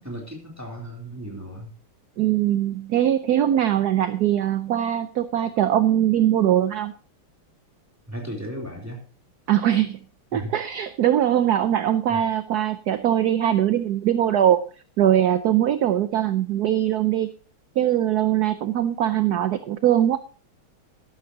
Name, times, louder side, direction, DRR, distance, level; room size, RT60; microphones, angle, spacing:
voice 1, 0.0-1.7 8.1-9.0 10.3-10.5 12.1-12.2, equal, 5° right, -1 dB, 3.2 m, -35 dB
voice 2, 2.2-6.9 9.5-10.0 10.3-14.6 15.0-17.3 17.8-20.2, right 11 dB, 65° right, 11 dB, 1.0 m, -21 dB
13.5 x 12.5 x 2.9 m, 0.37 s
omnidirectional pair, 2.4 m